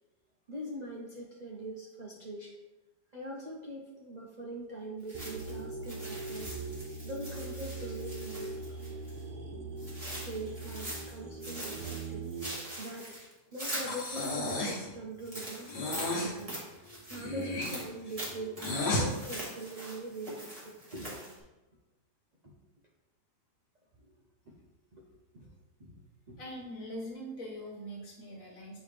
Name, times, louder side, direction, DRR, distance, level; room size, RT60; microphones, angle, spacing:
voice 1, 0.5-2.6 3.1-6.6 7.0-8.5 8.8-8.9 10.0-12.4 12.8-13.2 13.5-16.6 17.1-18.7 19.0-21.3 22.4-22.5 24.5-24.6 24.9-25.1 25.3-25.5 25.8-25.9 26.3-26.4, right 1 dB, 45° right, -2 dB, 0.6 m, -42 dB
sound 1, 5.1-9.2 9.8-11.1 11.4-14.7 15.2-21.4, right 1 dB, 20° right, 1.6 m, -43 dB
sound 2, 5.1-12.4, right 3 dB, 85° right, 1.4 m, -41 dB
Breathing, 13.8-14.9 15.7-16.4 17.1-19.1, left 2 dB, 80° left, 1.9 m, -33 dB
voice 2, 26.4-28.8, equal, 55° left, -1 dB, 1.6 m, -42 dB
8.9 x 3.2 x 3.3 m, 1.0 s
omnidirectional pair, 1.7 m